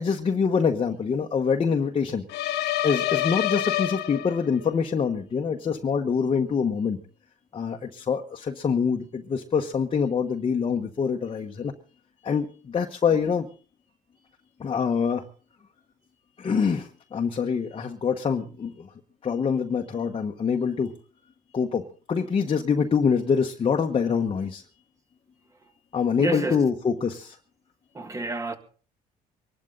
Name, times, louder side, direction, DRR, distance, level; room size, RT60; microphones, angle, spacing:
voice 1, 0.0-2.2 2.8-7.0 7.5-11.7 12.2-13.5 14.6-15.2 16.4-18.9 19.2-20.9 21.5-24.6 25.9-27.4, left 6 dB, 35° left, 1.2 m, -25 dB
sound 1, 2.3-4.7, left 13 dB, 80° left, 1.3 m, -27 dB
voice 2, 26.2-26.6 27.9-28.6, right 2 dB, 20° right, 1.9 m, -29 dB
24.0 x 12.0 x 3.9 m
cardioid pair, 110°, 17 cm